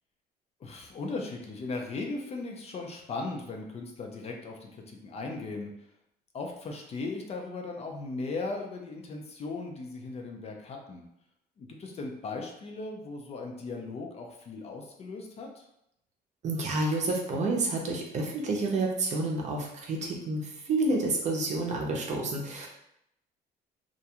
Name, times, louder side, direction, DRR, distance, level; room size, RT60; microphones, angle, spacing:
voice 1, 0.6-5.7 6.3-11.0 11.6-15.6, left 3 dB, 40° left, 1 dB, 0.5 m, -37 dB
voice 2, 16.4-22.7, right 2 dB, 45° right, -1 dB, 0.6 m, -29 dB
2.4 x 2.2 x 2.8 m, 0.79 s
cardioid pair, 110°, 17 cm